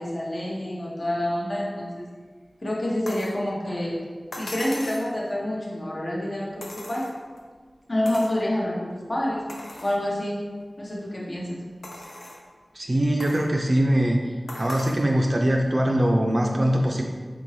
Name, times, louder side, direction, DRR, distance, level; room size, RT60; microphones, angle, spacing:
voice 1, 0.0-2.1 2.6-4.0 4.3-7.1 7.9-9.5 9.8-10.5 10.8-11.6, left 1 dB, 50° left, -3 dB, 0.8 m, -28 dB
sound 1, 3.1-3.4 4.3-5.1 6.6-7.4 8.1-8.4 8.9-9.0 9.5-10.0 10.6-10.7 11.8-12.4 13.2-13.5 14.5-15.1 16.3-16.4, left 1 dB, 75° left, 0.5 m, -39 dB
voice 2, 12.7-14.2 14.6-17.0, right 1 dB, 50° right, 1 dB, 0.3 m, -22 dB
3.7 x 2.6 x 3.1 m, 1.5 s
wide cardioid pair, 45°, 0 cm